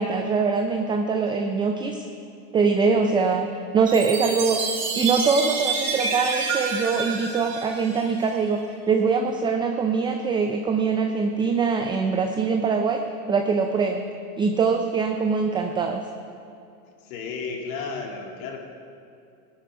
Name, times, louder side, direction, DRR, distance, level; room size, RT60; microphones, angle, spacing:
voice 1, 0.0-2.1 2.5-3.5 3.7-13.0 13.3-14.1 14.4-16.0, right 5 dB, 10° right, 4 dB, 0.4 m, -23 dB
Chime, 3.9-8.4, right 5 dB, 40° right, 3.4 m, -28 dB
voice 2, 17.0-18.6, left 5 dB, 65° left, 1 dB, 2.6 m, -33 dB
16.0 x 10.5 x 5.6 m, 2.6 s
hypercardioid pair, 120°, 45 cm